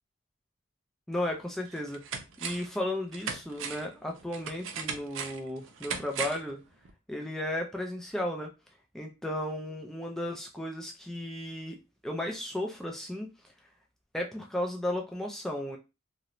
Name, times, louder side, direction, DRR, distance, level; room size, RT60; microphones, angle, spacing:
voice 1, 1.1-2.0 2.4-6.6 7.1-8.5 8.9-11.8 12.0-13.3 14.1-15.8, left 1 dB, ahead, 1 dB, 0.3 m, -34 dB
sound 1, 1.1-1.2 1.7-2.8 3.1-6.5 6.8-6.9, right 6 dB, 75° right, 0.5 m, -38 dB
2.5 x 2.0 x 2.9 m, 0.26 s
head